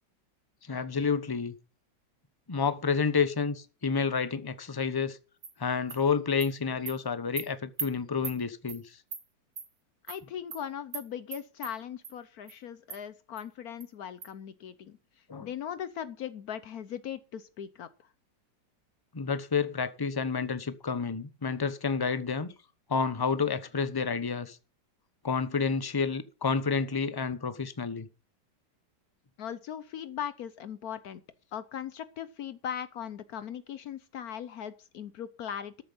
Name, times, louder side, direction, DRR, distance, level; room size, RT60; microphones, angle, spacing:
voice 1, 0.7-1.5 2.5-5.2 5.6-8.8 15.3-15.5 19.1-22.5 22.9-24.6 25.2-28.1, left 5 dB, 25° left, 0.5 m, -29 dB
Animal, 5.4-5.5 5.9-6.0 6.4-6.5 6.9-7.0 7.4-7.5 7.8-7.9 8.2-8.4 8.7-8.8 9.1-9.2 9.6-9.7 10.1-10.2 10.5-10.6 10.9-11.0 11.3-11.7 12.0-12.1 12.5-12.6 12.9-13.0 13.4-13.5 13.8-13.9 14.2-14.3, right 6 dB, 75° right, 2.6 m, -38 dB
voice 2, 10.0-18.1 29.4-31.2 31.5-35.8, left 9 dB, 65° left, 1.1 m, -39 dB
13.0 x 7.3 x 5.5 m
omnidirectional pair, 2.0 m